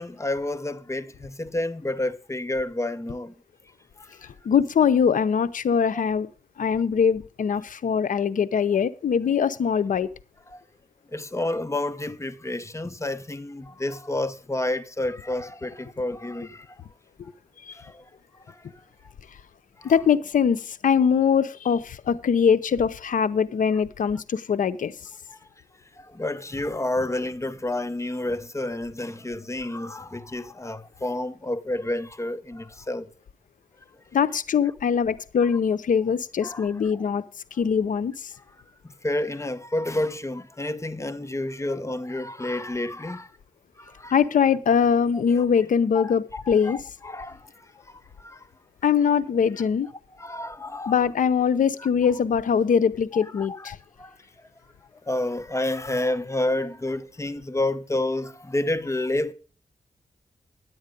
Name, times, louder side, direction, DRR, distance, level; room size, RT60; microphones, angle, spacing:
voice 1, 0.0-3.3 4.0-4.1 10.5-10.6 11.1-16.8 17.7-18.0 18.5-18.6 19.8-19.9 25.3-25.4 26.0-33.1 36.4-36.7 38.8-43.3 43.8-44.2 45.3-45.4 45.9-47.5 48.2-48.4 50.2-50.9 51.8-51.9 53.1-54.2 55.1-59.3, left 1 dB, 20° left, 0.9 m, -30 dB
voice 2, 4.4-6.3 6.6-10.1 17.7-17.8 19.8-24.9 34.1-37.2 37.6-38.3 44.1-46.8 48.8-49.9 50.9-53.8, left 7 dB, 75° left, 0.7 m, -22 dB
10.5 x 8.0 x 5.2 m
cardioid pair, 50°, 14 cm